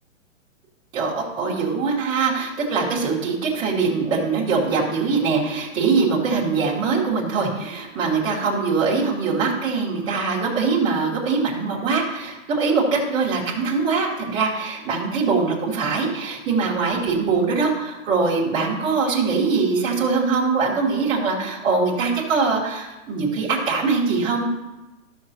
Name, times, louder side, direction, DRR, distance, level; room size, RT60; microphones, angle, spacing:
voice 1, 0.9-24.4, right 4 dB, 10° right, -6 dB, 1.4 m, -22 dB
13.0 x 6.4 x 2.8 m, 1.1 s
hypercardioid pair, 170°, 40 cm